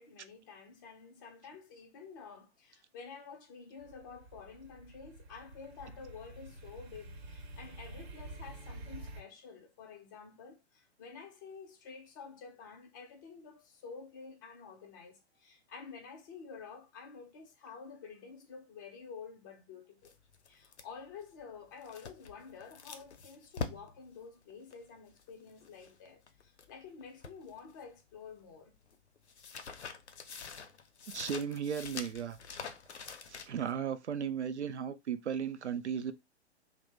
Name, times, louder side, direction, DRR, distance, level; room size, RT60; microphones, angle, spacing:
voice 1, 0.0-20.1 20.5-28.7, left 5 dB, 20° left, 0.4 m, -50 dB
sound 1, 3.8-9.2, right 2 dB, 65° right, 0.9 m, -49 dB
sound 2, 20.0-26.7 27.0-28.2 28.4-33.7, left 5 dB, 75° left, 0.6 m, -45 dB
voice 2, 31.1-32.4 33.3-36.1, right 8 dB, 80° right, 0.5 m, -35 dB
2.6 x 2.1 x 3.3 m
figure-of-eight pair, 115°, 33 cm